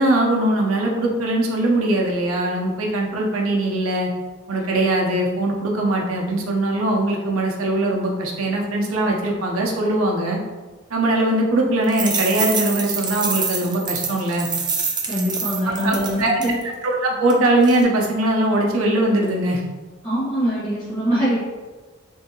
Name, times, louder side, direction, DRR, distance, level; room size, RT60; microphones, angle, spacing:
voice 1, 0.0-4.1 4.5-10.4 10.9-14.5 15.8-16.3 16.8-19.6, right 1 dB, 85° right, -1 dB, 0.6 m, -21 dB
sound 1, 11.8-16.6 17.3-17.4 17.6-17.8, right 5 dB, 20° right, 0.4 m, -26 dB
voice 2, 15.1-16.6 20.0-21.4, equal, 20° left, -13 dB, 1.2 m, -23 dB
3.5 x 2.7 x 2.8 m, 1.3 s
head